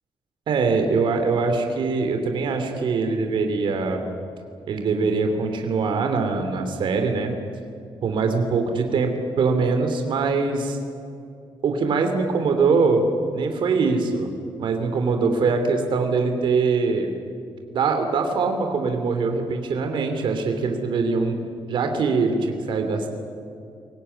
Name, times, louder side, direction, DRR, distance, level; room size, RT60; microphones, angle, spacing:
voice 1, 0.5-4.0 4.7-7.3 8.0-9.1 9.4-10.8 11.6-13.1 13.3-14.3 14.6-17.1 17.7-21.4 21.7-23.1, right 4 dB, 65° right, 5 dB, 3.0 m, -22 dB
23.0 x 18.5 x 9.9 m, 2.5 s
wide cardioid pair, 150°, 9 cm